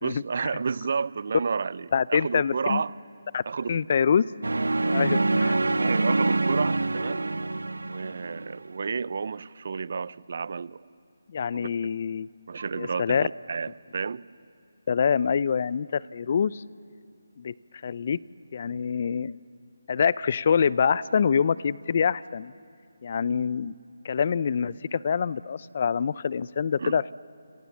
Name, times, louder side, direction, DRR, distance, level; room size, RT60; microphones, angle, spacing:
voice 1, 0.0-2.9 3.5-3.8 5.8-7.3 7.8-10.8 11.5-11.7 12.5-14.3 26.8-27.0, right 5 dB, 55° right, 20 dB, 0.6 m, -31 dB
voice 2, 1.9-2.8 3.3-3.4 3.7-4.2 4.9-5.6 11.3-12.3 12.8-13.3 14.9-16.6 17.4-17.5 17.8-18.2 18.5-19.4 19.9-22.5 23.0-23.7 24.0-27.1, left 6 dB, 45° left, 20 dB, 0.6 m, -25 dB
sound 1, 4.4-8.6, right 2 dB, 80° right, 1.0 m, -25 dB
27.5 x 27.5 x 7.3 m, 2.4 s
figure-of-eight pair, 155°, 0 cm